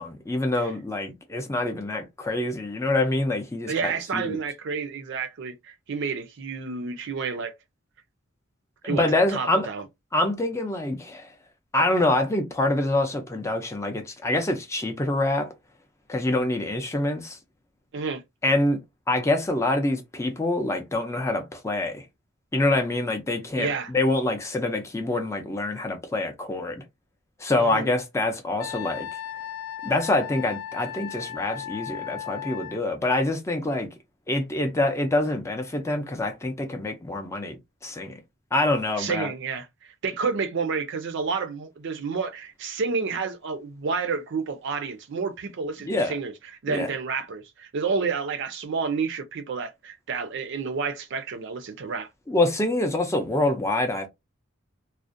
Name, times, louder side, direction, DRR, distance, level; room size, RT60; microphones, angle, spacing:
voice 1, 0.0-4.4 8.8-9.7 10.1-11.3 11.7-15.5 16.1-17.4 18.4-18.8 19.1-22.0 22.5-23.7 23.9-26.8 27.4-29.1 29.8-33.9 34.3-37.6 37.8-38.1 38.5-39.3 45.9-46.2 46.7-46.9 52.3-54.1, left 2 dB, 15° left, 0.4 m, -25 dB
voice 2, 3.7-7.5 8.8-9.8 17.9-18.2 23.6-23.9 27.6-27.9 39.0-46.3 46.6-52.1, right 5 dB, 60° right, 0.5 m, -30 dB
Wind instrument woodwind instrument, 28.6-32.8, left 10 dB, 85° left, 0.3 m, -36 dB
2.4 x 2.1 x 2.5 m
head